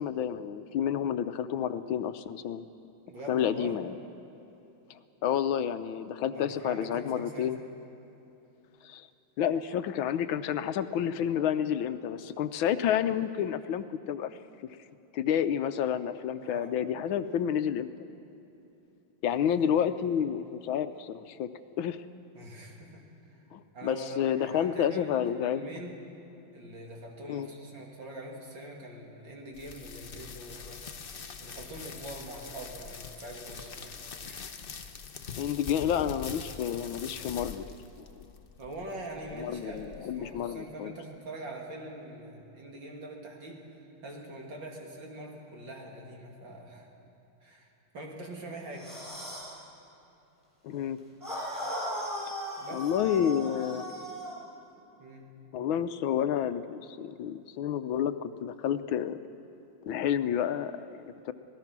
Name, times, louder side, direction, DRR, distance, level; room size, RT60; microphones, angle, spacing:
voice 1, 0.0-2.6 3.3-3.9 4.9-7.6 8.8-9.1 9.4-14.3 15.1-17.9 19.2-21.5 21.8-22.0 23.5-25.7 27.3-27.5 35.4-37.6 38.0-38.2 39.4-40.9 50.6-51.0 52.7-53.9 55.5-59.2 59.9-61.3, left 9 dB, 80° left, 11 dB, 1.5 m, -30 dB
voice 2, 3.1-3.8 6.3-7.5 16.4-16.7 19.3-19.4 19.7-20.0 22.3-23.4 23.7-26.0 26.5-31.0 31.4-34.5 38.6-43.7 44.0-46.9 47.4-47.7 47.9-48.9 52.6-52.9 55.0-55.3, right 1 dB, 65° right, 0 dB, 3.2 m, -43 dB
sound 1, 29.5-40.5, left 5 dB, 50° left, 0.7 m, -44 dB
sound 2, 48.7-49.6 51.2-54.4, equal, ahead, 6.1 m, -37 dB
26.5 x 18.5 x 6.0 m, 2.9 s
omnidirectional pair, 2.2 m